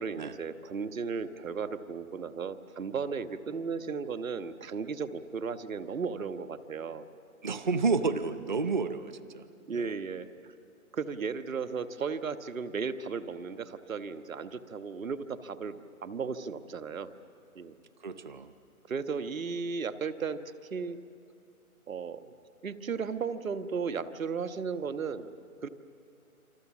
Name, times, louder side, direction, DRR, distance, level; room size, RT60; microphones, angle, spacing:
voice 1, 0.0-7.1 9.7-10.3 10.9-17.1 17.5-17.7 18.8-20.4 20.7-21.0 21.9-22.2 22.6-25.4 25.6-25.7, right 5 dB, 65° right, 10 dB, 1.4 m, -35 dB
voice 2, 7.4-9.4 9.7-9.9 18.0-18.5, right 4 dB, 35° right, 12 dB, 0.7 m, -30 dB
29.0 x 25.0 x 7.3 m, 2.5 s
hypercardioid pair, 170°, 44 cm